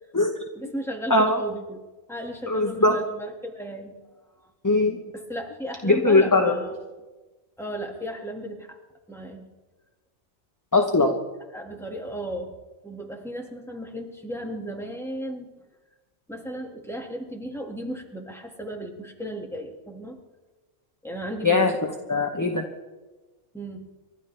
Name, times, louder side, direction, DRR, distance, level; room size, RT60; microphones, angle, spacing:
voice 1, 0.5-1.8 2.1-4.2 5.1-6.7 7.6-8.8 9.1-9.5 11.5-12.5 12.8-15.5 16.3-20.2 21.0-21.7 23.5-23.9, right 1 dB, ahead, 0 dB, 1.9 m, -35 dB
voice 2, 2.5-3.0 4.6-5.0 5.8-6.5 10.7-11.1 21.4-21.7 22.1-22.6, left 2 dB, 15° left, 3 dB, 0.8 m, -20 dB
29.0 x 12.5 x 3.4 m, 1.2 s
omnidirectional pair, 1.4 m